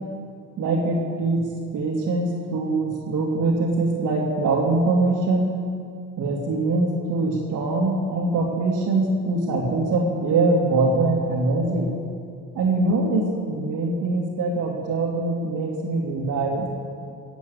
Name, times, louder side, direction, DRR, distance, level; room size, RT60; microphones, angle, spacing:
voice 1, 0.6-1.5 1.7-5.5 6.2-11.9 12.5-16.7, right 2 dB, 80° right, -4 dB, 2.9 m, -23 dB
19.0 x 9.0 x 8.2 m, 2.3 s
cardioid pair, 90°, 30 cm